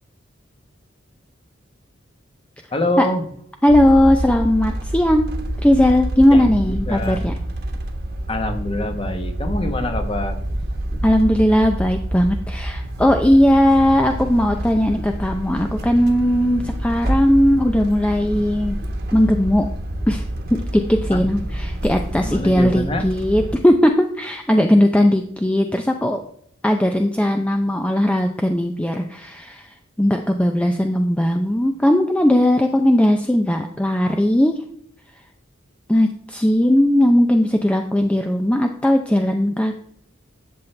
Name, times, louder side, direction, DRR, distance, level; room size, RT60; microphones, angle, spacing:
voice 1, 2.7-3.2 6.3-7.3 8.3-10.4 21.1-21.2 22.2-23.1, left 1 dB, 30° left, 6 dB, 1.2 m, -25 dB
voice 2, 3.6-5.3 5.6-7.3 11.0-18.8 19.1-19.7 20.1-20.2 20.5-26.2 26.6-29.7 30.0-34.6 35.9-39.7, left 1 dB, 5° left, 4 dB, 0.5 m, -18 dB
sound 1, 3.7-23.6, right 1 dB, 55° right, 1.3 m, -27 dB
12.0 x 7.3 x 3.3 m, 0.67 s
head